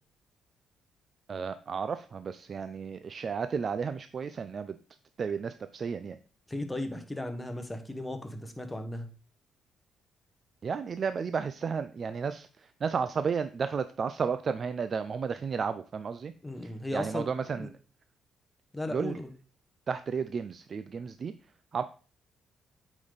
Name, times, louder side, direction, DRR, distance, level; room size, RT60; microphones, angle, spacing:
voice 1, 1.3-4.8 5.2-6.2 10.6-16.3 16.6-17.7 18.9-19.2 19.9-21.3 21.7-21.8, right 6 dB, 45° right, 11 dB, 0.4 m, -33 dB
voice 2, 6.5-9.1 16.4-17.3 17.5-17.7 18.7-19.3, left 1 dB, 10° left, 6 dB, 1.4 m, -36 dB
8.6 x 5.1 x 4.0 m, 0.39 s
cardioid pair, 90°, 0 cm